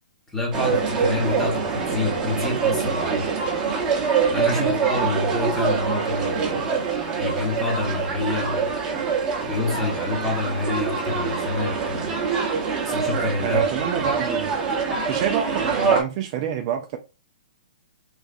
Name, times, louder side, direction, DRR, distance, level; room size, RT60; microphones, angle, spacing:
voice 1, 0.3-3.3 4.3-6.8 7.1-8.7 9.4-12.1 12.8-13.6, left 3 dB, 10° left, 1.1 m, -27 dB
sound 1, 0.5-16.0, right 5 dB, 20° right, 1.0 m, -24 dB
voice 2, 13.4-14.6 15.1-17.0, right 9 dB, 40° right, 0.5 m, -28 dB
3.3 x 3.2 x 2.6 m
hypercardioid pair, 145°, 4 cm